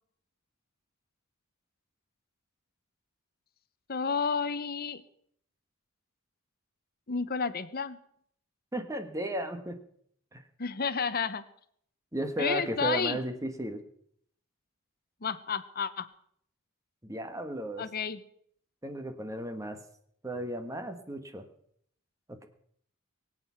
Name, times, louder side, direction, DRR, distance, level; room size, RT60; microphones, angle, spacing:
voice 1, 3.9-5.0 7.1-8.0 10.6-11.4 12.4-13.2 15.2-16.1 17.8-18.2, left 5 dB, 45° left, 14 dB, 0.9 m, -31 dB
voice 2, 8.7-9.8 10.3-10.4 12.1-13.8 17.0-17.8 18.8-19.8 20.2-21.4, right 1 dB, 15° right, 7 dB, 1.3 m, -34 dB
22.5 x 8.4 x 5.7 m, 0.67 s
head